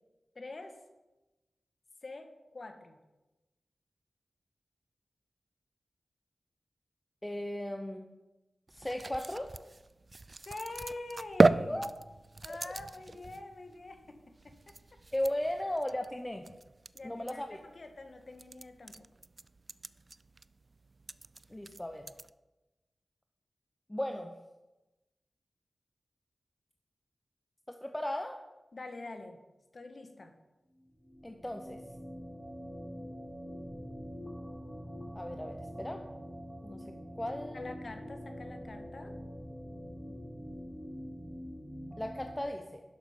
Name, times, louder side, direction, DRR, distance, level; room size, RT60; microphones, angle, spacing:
voice 1, 0.3-0.8 2.0-3.0 10.4-11.8 12.4-14.7 16.9-19.1 28.7-29.4 29.7-30.3 37.5-39.1, left 2 dB, 60° left, 6 dB, 1.3 m, -45 dB
voice 2, 7.2-8.0 8.7-9.5 11.7-12.0 15.1-16.4 17.0-17.6 21.5-22.1 23.9-24.3 27.8-28.4 31.2-31.8 35.1-36.0 36.6-36.8 37.2-37.6 42.0-42.8, left 1 dB, 15° left, 5 dB, 0.7 m, -36 dB
sound 1, 8.7-22.3, right 3 dB, 50° right, 0.3 m, -35 dB
sound 2, 30.9-42.4, equal, 5° right, 2.2 m, -45 dB
11.5 x 6.0 x 5.2 m, 1.1 s
cardioid pair, 45°, 0 cm